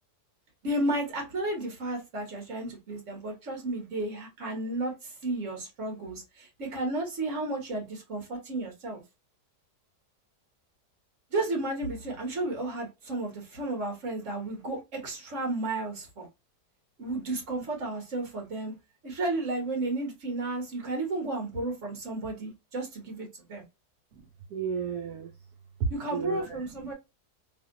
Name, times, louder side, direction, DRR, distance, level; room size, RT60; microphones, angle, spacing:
voice 1, 0.6-9.0 11.3-16.3 17.0-18.7 19.0-23.6 25.9-26.9, right 2 dB, 50° right, 1.6 m, -33 dB
voice 2, 24.5-25.3 25.8-26.9, right 6 dB, 75° right, 1.2 m, -33 dB
3.4 x 2.7 x 2.5 m
omnidirectional pair, 1.7 m